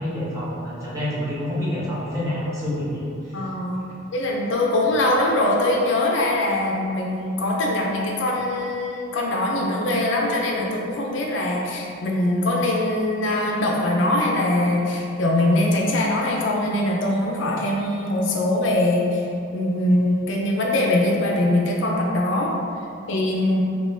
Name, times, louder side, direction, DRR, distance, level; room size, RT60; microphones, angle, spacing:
voice 1, 0.0-3.3, left 1 dB, 15° right, -9 dB, 0.9 m, -27 dB
voice 2, 3.3-3.8 4.1-19.3 19.5-22.5 23.1-23.7, left 1 dB, 65° left, -1 dB, 0.5 m, -22 dB
3.6 x 3.0 x 2.5 m, 2.5 s
head